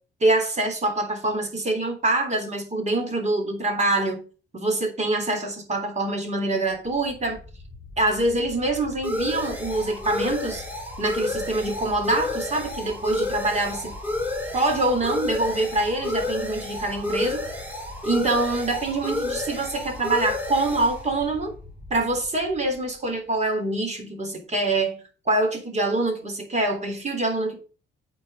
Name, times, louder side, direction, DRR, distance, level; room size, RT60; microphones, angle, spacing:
voice 1, 0.2-4.2 4.5-7.4 8.0-10.6 11.0-13.9 14.5-17.4 18.0-21.5 21.9-25.0 25.2-27.6, right 2 dB, 35° right, 3.4 m, -25 dB
sound 1, 7.1-22.5, left 2 dB, 10° right, 4.7 m, -31 dB
8.9 x 4.8 x 6.8 m
cardioid pair, 90°, 20 cm